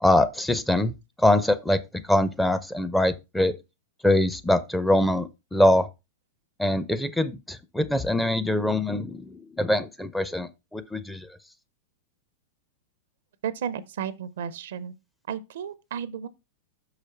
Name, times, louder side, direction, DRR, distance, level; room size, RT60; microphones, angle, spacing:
voice 1, 0.0-3.6 4.0-5.9 6.6-11.3, left 1 dB, 5° left, 0.7 m, -23 dB
voice 2, 13.4-14.9 15.3-16.3, right 8 dB, 65° right, 0.6 m, -33 dB
6.5 x 4.9 x 4.4 m
hypercardioid pair, 100°, 0 cm